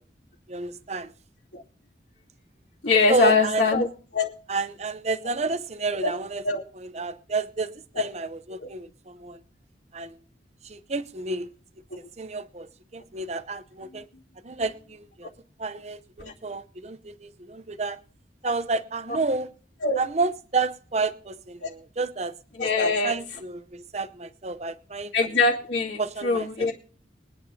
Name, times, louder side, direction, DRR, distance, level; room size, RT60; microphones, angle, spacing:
voice 1, 0.5-1.1 3.1-3.7 4.5-6.4 6.7-9.4 9.9-10.2 10.6-11.5 12.2-14.1 14.4-15.3 15.6-18.0 18.4-19.5 20.0-22.4 23.0-25.1 26.0-26.7, right 3 dB, 40° right, 0.7 m, -30 dB
voice 2, 2.8-3.9 4.1-4.3 6.0-6.1 6.4-6.6 8.0-8.1 8.6-8.7 11.9-12.0 16.2-16.3 19.8-20.0 21.6-21.7 22.5-23.2 25.1-26.7, left 3 dB, 90° left, 2.7 m, -23 dB
23.0 x 10.0 x 2.8 m
head